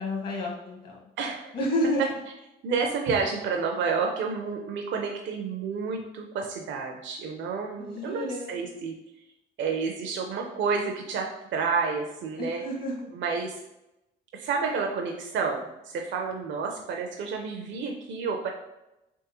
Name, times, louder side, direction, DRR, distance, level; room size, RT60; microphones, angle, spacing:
voice 1, 0.0-1.0 1.5-2.0 7.8-8.6 12.4-13.1, left 1 dB, 50° left, -2 dB, 1.2 m, -30 dB
voice 2, 1.2-1.6 2.6-8.9 9.6-12.6 13.1-13.6 14.3-18.5, right 5 dB, 70° right, 2 dB, 0.5 m, -30 dB
3.5 x 3.2 x 2.9 m, 0.90 s
cardioid pair, 90°, 20 cm